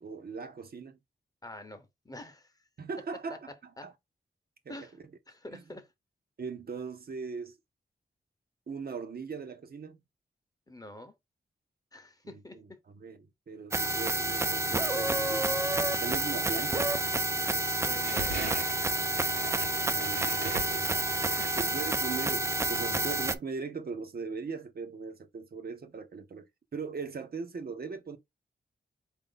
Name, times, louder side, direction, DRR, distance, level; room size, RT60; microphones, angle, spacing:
voice 1, 0.0-1.0 2.8-3.5 3.8-3.9 4.7-4.8 5.5-5.6 6.4-7.6 8.7-10.0 12.2-12.7 12.9-13.2 13.5-15.5 16.0-16.9 19.8-21.1 21.6-26.5 26.7-28.2, right 5 dB, 60° right, 0.7 m, -39 dB
voice 2, 1.4-2.5 3.3-3.9 4.7-4.9 5.3-5.9 10.7-11.1 11.9-12.8 17.8-18.4 21.4-21.6, left 1 dB, 20° left, 0.8 m, -46 dB
sound 1, 13.7-23.4, right 2 dB, 15° right, 0.4 m, -29 dB
sound 2, 17.9-22.2, right 3 dB, 75° right, 1.1 m, -40 dB
4.4 x 2.6 x 3.8 m
wide cardioid pair, 120°, 18 cm